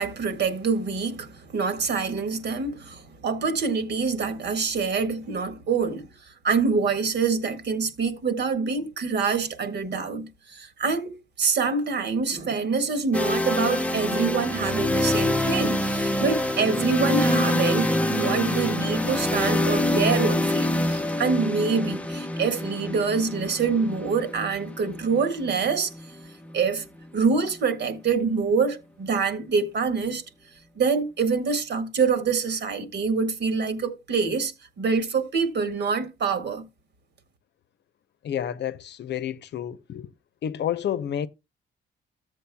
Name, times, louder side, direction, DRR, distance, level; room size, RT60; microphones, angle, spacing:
voice 1, 0.0-25.9 26.5-26.8 27.1-30.2 30.7-36.6, right 5 dB, 60° right, 1.8 m, -26 dB
sound 1, 13.1-27.0, left 1 dB, 5° left, 0.7 m, -26 dB
voice 2, 38.2-40.1 40.4-41.3, left 10 dB, 60° left, 0.7 m, -30 dB
14.0 x 7.6 x 2.2 m
cardioid pair, 90°, 20 cm